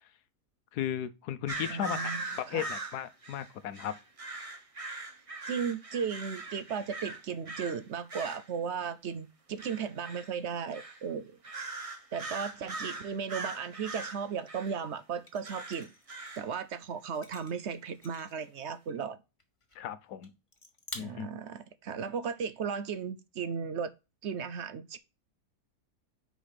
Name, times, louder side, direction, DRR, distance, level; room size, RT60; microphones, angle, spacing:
voice 1, 0.7-4.0 19.7-20.3 20.9-21.3, left 10 dB, 80° left, 1.2 m, -36 dB
sound 1, 1.5-7.8 8.1-8.5 9.6-10.3 10.7-11.0 11.4-14.8 15.4-16.5, right 2 dB, 30° right, 0.7 m, -40 dB
voice 2, 1.7-2.7 5.5-11.4 12.1-15.9 16.4-19.2 21.0-23.9 24.2-25.0, right 6 dB, 60° right, 0.7 m, -36 dB
sound 2, 14.6-14.7 15.3-16.5 17.0-18.5 18.9-19.1 19.4-19.9 20.2-20.3 20.5-20.9, left 3 dB, 20° left, 1.3 m, -48 dB
5.2 x 5.0 x 5.6 m
omnidirectional pair, 1.7 m